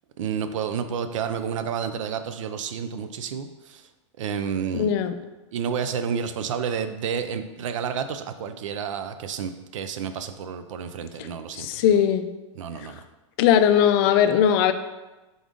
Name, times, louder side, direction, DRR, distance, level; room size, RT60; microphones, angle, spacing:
voice 1, 0.2-3.8 4.2-4.9 5.5-11.8 12.6-13.0, right 7 dB, 80° right, 9 dB, 0.4 m, -30 dB
voice 2, 4.7-5.1 11.2-11.3 11.5-12.3 12.8-12.9 13.4-14.7, left 9 dB, 50° left, 10 dB, 0.4 m, -19 dB
3.8 x 3.6 x 3.7 m, 1.1 s
supercardioid pair, 135°, 16 cm